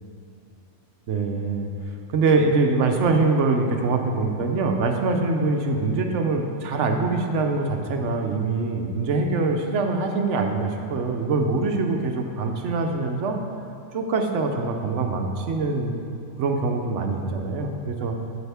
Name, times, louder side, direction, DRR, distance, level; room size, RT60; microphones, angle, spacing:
voice 1, 1.1-13.4 13.9-15.9 16.4-18.1, right 3 dB, 75° right, 4 dB, 1.0 m, -24 dB
12.0 x 4.9 x 3.4 m, 2.6 s
omnidirectional pair, 1.3 m